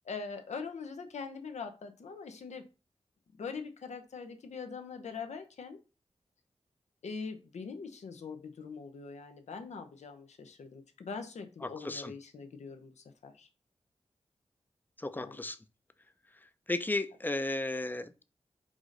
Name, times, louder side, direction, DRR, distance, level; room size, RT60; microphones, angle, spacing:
voice 1, 0.0-2.7 3.4-5.8 7.0-13.5 15.1-15.4, left 5 dB, 90° left, 0.7 m, -42 dB
voice 2, 11.6-12.1 15.0-15.6 16.7-18.2, left 2 dB, 15° left, 0.4 m, -34 dB
4.9 x 2.6 x 3.8 m
wide cardioid pair, 65°, 11 cm